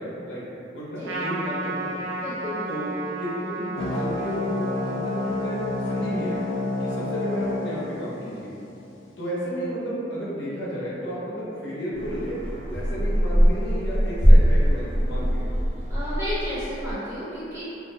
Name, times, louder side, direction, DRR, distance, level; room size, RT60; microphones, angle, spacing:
voice 1, 0.0-2.0 2.7-5.6 5.9-6.4 6.8-8.6 9.2-12.4 12.6-15.5, equal, 70° left, -8 dB, 0.7 m, -32 dB
Trumpet, 1.0-7.7, right 2 dB, 75° right, 0.4 m, -34 dB
voice 2, 2.2-2.7 15.9-17.6, equal, 15° right, -12 dB, 0.8 m, -32 dB
sound 1, 3.8-8.8, left 2 dB, 90° left, 0.3 m, -29 dB
sound 2, 11.9-16.9, equal, 25° left, 1.0 m, -21 dB
2.6 x 2.1 x 2.8 m, 2.7 s
head